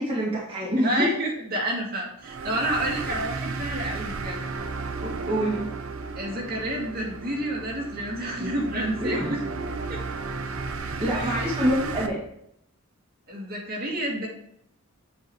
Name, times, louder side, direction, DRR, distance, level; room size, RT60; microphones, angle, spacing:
voice 1, 0.0-1.1 5.3-5.6 8.4-8.5 9.0-9.3 11.0-12.2, equal, 25° right, -5 dB, 1.6 m, -26 dB
voice 2, 0.8-4.4 6.2-9.4 9.9-10.0 11.1-11.4 13.3-14.3, right 1 dB, 45° right, -3 dB, 2.0 m, -29 dB
sound 1, 2.2-12.1, right 4 dB, 70° right, 0.7 m, -34 dB
8.1 x 3.8 x 4.7 m, 0.73 s
head